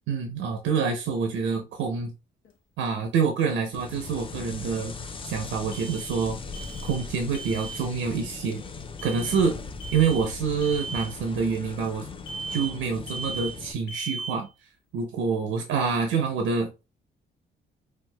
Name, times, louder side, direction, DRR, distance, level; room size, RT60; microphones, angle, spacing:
voice 1, 0.1-2.1 2.8-4.9 5.2-6.4 6.8-8.6 9.0-9.6 9.9-12.1 12.5-14.5 14.9-16.7, right 5 dB, 85° right, 0.6 m, -26 dB
sound 1, 2.5-2.6 5.7-6.3 6.5-7.1 7.3-7.8 9.0-9.5 9.8-10.3 10.6-11.1 12.3-12.8 13.1-13.6 13.9-14.4, right 4 dB, 85° left, 0.8 m, -37 dB
sound 2, 3.7-13.7, left 4 dB, 25° left, 0.5 m, -39 dB
4.4 x 2.3 x 2.2 m
cardioid pair, 90°, 20 cm